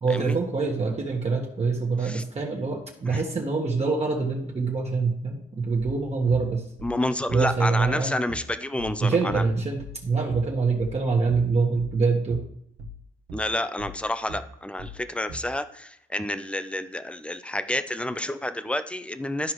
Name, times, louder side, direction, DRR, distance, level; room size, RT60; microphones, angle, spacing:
voice 1, 0.0-6.7 7.3-8.2 9.0-12.4, right 4 dB, 30° right, -1 dB, 1.3 m, -25 dB
sound 1, 5.8-15.6, equal, 75° right, 1.1 m, -41 dB
voice 2, 6.8-9.4 13.3-19.5, left 1 dB, 5° left, 11 dB, 0.6 m, -29 dB
13.0 x 4.7 x 3.1 m, 0.73 s
cardioid pair, 90°, 20 cm